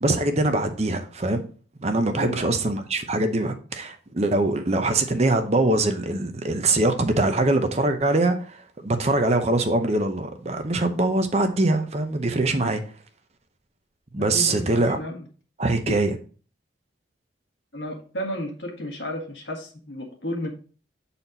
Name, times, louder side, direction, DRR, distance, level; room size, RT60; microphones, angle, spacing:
voice 1, 0.0-1.4 1.8-12.8 14.1-15.0 15.6-16.1, right 2 dB, 35° right, 0.7 m, -23 dB
voice 2, 2.2-2.5 14.2-15.2 15.9-16.0 17.7-20.5, equal, 75° left, 1.6 m, -33 dB
7.3 x 4.2 x 3.9 m
head